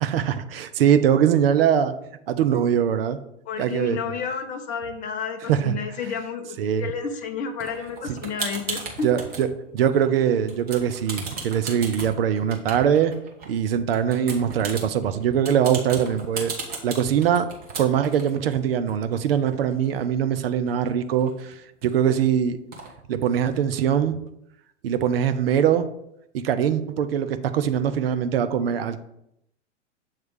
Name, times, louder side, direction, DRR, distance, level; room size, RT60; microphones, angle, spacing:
voice 1, 0.0-1.9 2.3-3.2 3.6-4.0 5.5-5.7 6.6-6.9 8.1-8.2 9.0-9.5 9.7-13.1 13.4-16.5 16.8-17.5 17.8-22.6 23.1-24.2 24.8-25.9 26.3-29.0, right 9 dB, 50° right, 10 dB, 0.6 m, -22 dB
voice 2, 3.5-9.1, left 6 dB, 20° left, 6 dB, 0.6 m, -31 dB
sound 1, 7.6-9.4 9.9-10.2 10.5-13.5 13.9-20.0 20.4-20.5 20.7-22.1 22.7-22.9, right 4 dB, 25° right, 1.3 m, -36 dB
7.3 x 3.0 x 4.8 m, 0.78 s
figure-of-eight pair, 105°, 37 cm